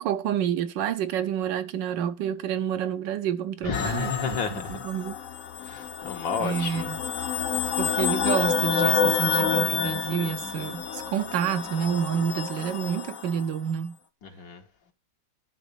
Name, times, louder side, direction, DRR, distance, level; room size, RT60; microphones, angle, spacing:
voice 1, 0.0-5.2 6.4-7.0 7.8-14.0, right 8 dB, 75° right, 1.4 m, -29 dB
voice 2, 3.7-4.8 5.6-6.9 14.2-14.6, left 5 dB, 80° left, 2.2 m, -31 dB
sound 1, 3.7-13.4, left 7 dB, 55° left, 1.1 m, -28 dB
11.0 x 4.0 x 6.7 m
omnidirectional pair, 2.0 m